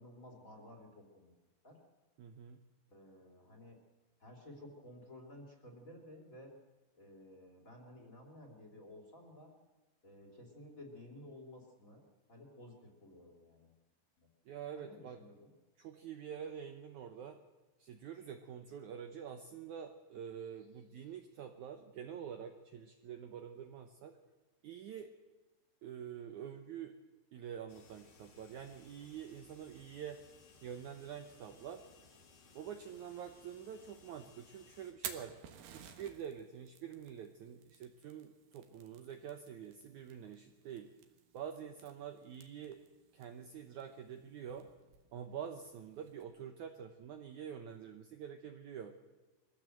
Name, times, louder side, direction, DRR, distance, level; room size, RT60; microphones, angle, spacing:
voice 1, 0.0-1.3 1.6-1.8 2.9-3.8 4.2-6.5 7.0-9.5 10.0-13.7 14.2-14.3 14.7-15.5, left 1 dB, 20° left, 2 dB, 2.9 m, -54 dB
voice 2, 2.2-2.6 14.5-15.2 15.8-17.4 17.8-24.2 24.6-25.1 25.8-26.9 27.3-30.3 30.6-31.8 32.5-35.4 35.7-40.9 41.3-42.8 43.1-44.7 45.1-49.0, right 8 dB, 85° right, 6 dB, 1.7 m, -47 dB
sound 1, 27.7-34.9, left 4 dB, 50° left, 3.9 m, -62 dB
Fire, 34.8-46.2, right 9 dB, 65° right, 3.1 m, -54 dB
23.0 x 16.0 x 7.8 m, 1.2 s
omnidirectional pair, 4.9 m